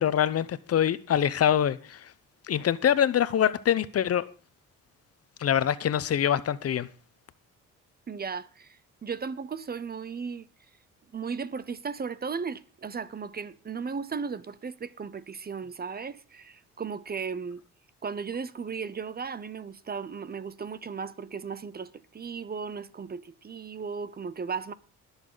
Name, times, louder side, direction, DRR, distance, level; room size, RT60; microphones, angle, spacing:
voice 1, 0.0-2.1 2.5-4.2 5.4-6.9, left 9 dB, 50° left, 0.9 m, -24 dB
voice 2, 8.1-10.5 11.1-17.6 18.0-24.7, right 5 dB, 30° right, 0.8 m, -36 dB
21.0 x 7.2 x 3.9 m
cardioid pair, 90°, 30 cm